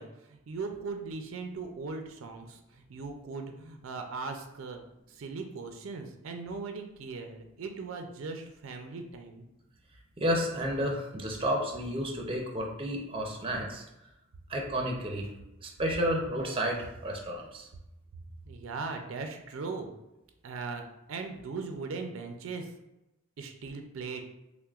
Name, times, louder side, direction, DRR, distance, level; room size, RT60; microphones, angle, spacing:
voice 1, 0.0-4.8 5.1-9.5 18.4-19.9 20.4-22.7 23.4-24.2, right 4 dB, 80° right, 5 dB, 0.4 m, -39 dB
voice 2, 10.2-13.8 14.5-15.3 15.6-17.7, equal, 25° right, 0 dB, 0.5 m, -31 dB
5.7 x 2.1 x 2.3 m, 0.93 s
head